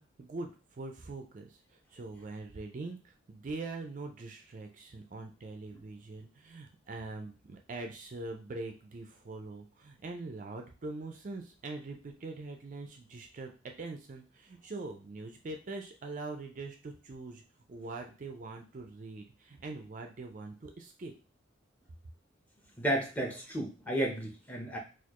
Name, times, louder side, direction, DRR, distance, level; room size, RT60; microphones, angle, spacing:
voice 1, 0.0-13.5 13.8-17.4 17.7-21.1, right 3 dB, 40° right, 4 dB, 0.4 m, -43 dB
voice 2, 22.8-24.8, right 1 dB, 10° left, -1 dB, 0.7 m, -32 dB
4.2 x 2.4 x 2.9 m, 0.35 s
head